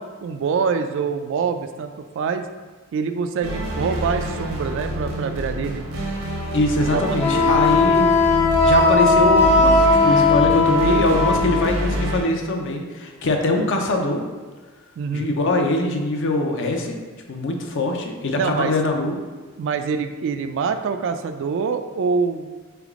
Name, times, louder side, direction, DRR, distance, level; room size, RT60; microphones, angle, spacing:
voice 1, 0.0-2.4 2.9-5.8 6.9-7.2 7.4-7.6 15.0-15.3 18.4-18.7 19.6-22.5, right 5 dB, 60° right, 8 dB, 0.3 m, -25 dB
sound 1, 3.4-12.2, equal, 80° right, 0.9 m, -27 dB
voice 2, 6.5-8.3 8.6-14.2 15.1-17.0 17.3-19.2, left 2 dB, 60° left, 3 dB, 0.6 m, -22 dB
Wind instrument woodwind instrument, 7.2-11.6, left 3 dB, 10° left, 0.6 m, -17 dB
4.0 x 3.4 x 3.6 m, 1.4 s
head